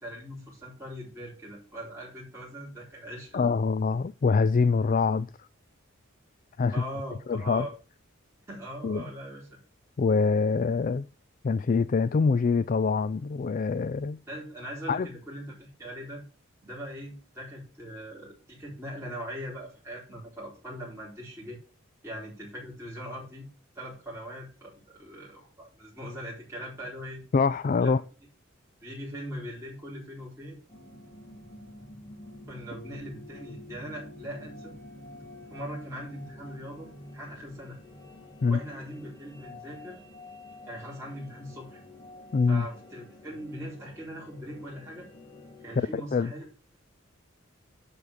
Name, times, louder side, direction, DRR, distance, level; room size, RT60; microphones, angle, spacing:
voice 1, 0.0-3.5 6.7-7.7 8.5-9.4 14.3-16.2 16.6-21.6 22.0-23.5 23.8-27.2 27.8-28.0 28.8-30.6 32.5-34.7 35.5-37.8 38.4-40.0 40.6-41.8 42.5-45.1 45.6-46.5, equal, 15° right, 4.2 m, -41 dB
voice 2, 3.3-5.3 6.6-6.8 7.3-7.7 8.8-9.1 10.0-11.1 11.4-14.2 14.9-15.1 27.3-28.0 38.4-38.6 42.3-42.7 45.8-46.3, left 4 dB, 40° left, 0.3 m, -25 dB
sound 1, 30.7-45.8, left 1 dB, 20° left, 2.1 m, -48 dB
10.5 x 4.2 x 6.7 m
head